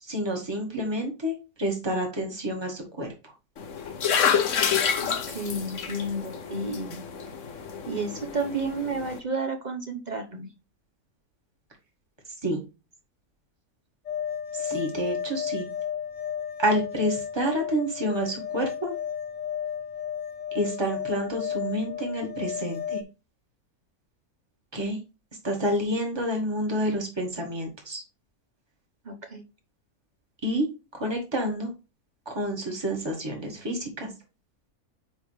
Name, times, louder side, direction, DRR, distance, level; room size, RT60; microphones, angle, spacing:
voice 1, 0.0-3.1 12.4-12.6 14.6-15.7 16.6-18.9 20.5-23.0 24.7-25.0 25.4-28.0 30.4-30.7 30.9-31.7 32.3-34.1, equal, 15° right, 0 dB, 2.0 m, -29 dB
sound 1, 3.6-9.2, left 7 dB, 60° left, 1.2 m, -28 dB
voice 2, 5.0-7.0 7.9-10.5 29.0-29.4, right 2 dB, 35° right, 6 dB, 0.9 m, -31 dB
sound 2, 14.0-23.0, left 8 dB, 90° left, 0.4 m, -33 dB
9.3 x 3.6 x 3.4 m, 0.29 s
omnidirectional pair, 1.6 m